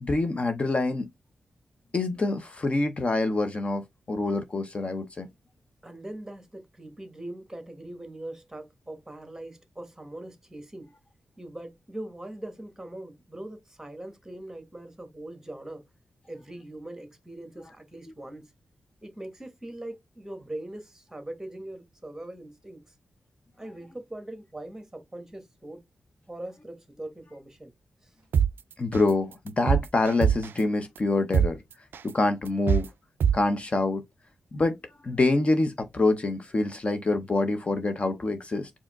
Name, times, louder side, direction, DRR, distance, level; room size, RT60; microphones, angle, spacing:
voice 1, 0.0-1.1 1.9-5.3 28.8-31.6 32.0-32.9 33.3-34.0 34.5-34.8 35.0-38.7, left 2 dB, 35° left, 0.6 m, -26 dB
voice 2, 5.8-10.9 11.4-15.8 16.3-18.5 19.0-22.8 23.6-25.8 26.3-27.7 28.0-28.1, right 1 dB, 10° right, 1.3 m, -41 dB
sound 1, 28.3-28.5 28.9-29.1 29.5-30.6 31.0-31.1 31.3-31.5 31.9-32.1 32.5-32.9 33.2-33.4, right 7 dB, 75° right, 0.3 m, -22 dB
4.8 x 2.8 x 3.5 m
wide cardioid pair, 105°, 4 cm